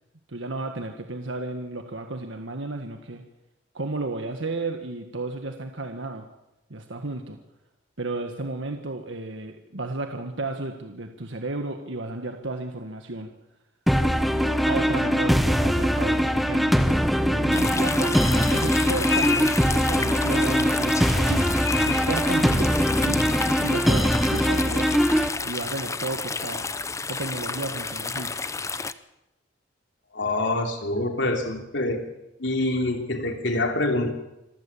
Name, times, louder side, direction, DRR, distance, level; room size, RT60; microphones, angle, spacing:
voice 1, 0.3-3.2 3.7-6.2 6.7-7.4 8.0-13.3 14.7-16.7 17.4-18.2 18.5-25.0 25.4-26.7 27.1-28.3, right 2 dB, 75° right, 5 dB, 1.6 m, -33 dB
sound 1, 13.9-25.3, equal, ahead, 1.1 m, -22 dB
sound 2, 17.5-28.9, left 4 dB, 15° left, 0.7 m, -30 dB
voice 2, 30.1-32.0 32.4-34.1, left 2 dB, 65° left, 3 dB, 3.2 m, -25 dB
26.5 x 15.5 x 7.3 m, 0.93 s
head